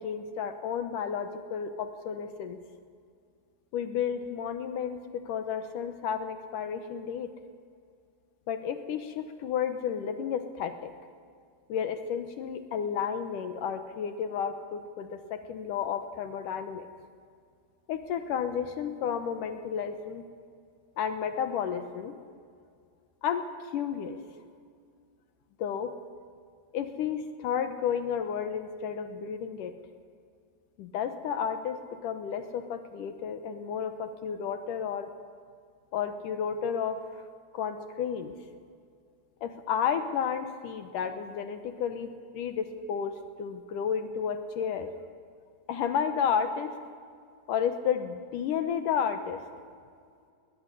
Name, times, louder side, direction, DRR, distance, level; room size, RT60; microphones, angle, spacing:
voice 1, 0.0-2.6 3.7-7.3 8.5-10.9 11.7-16.9 17.9-20.2 21.0-22.2 23.2-23.4 23.7-24.2 25.6-25.9 26.7-29.7 30.8-35.1 35.9-37.3 37.5-38.3 39.4-44.9 45.7-46.8 47.5-49.4, left 7 dB, 70° left, 9 dB, 2.3 m, -32 dB
20.0 x 19.5 x 9.9 m, 2.2 s
omnidirectional pair, 4.6 m